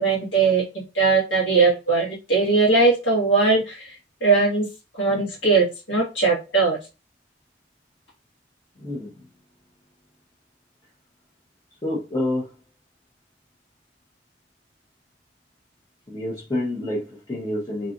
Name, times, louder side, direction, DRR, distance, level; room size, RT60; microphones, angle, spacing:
voice 1, 0.0-4.7 4.9-6.8, right 4 dB, 80° left, 1.4 m, -20 dB
voice 2, 8.8-9.1 11.8-12.5 16.1-17.9, left 1 dB, 20° left, 0.7 m, -28 dB
2.8 x 2.4 x 2.5 m
head